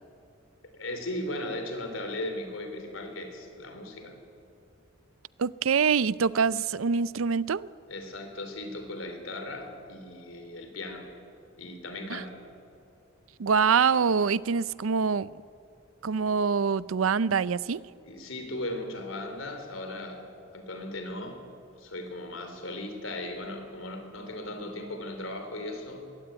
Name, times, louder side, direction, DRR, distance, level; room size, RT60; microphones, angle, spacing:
voice 1, 0.7-4.2 7.9-11.1 11.6-12.3 18.0-20.2 20.5-21.4 21.8-26.1, left 1 dB, 80° left, 3.4 m, -37 dB
voice 2, 5.4-7.7 12.1-12.2 13.4-15.3 16.0-17.8, right 5 dB, 90° right, 0.5 m, -25 dB
22.0 x 16.5 x 9.3 m
head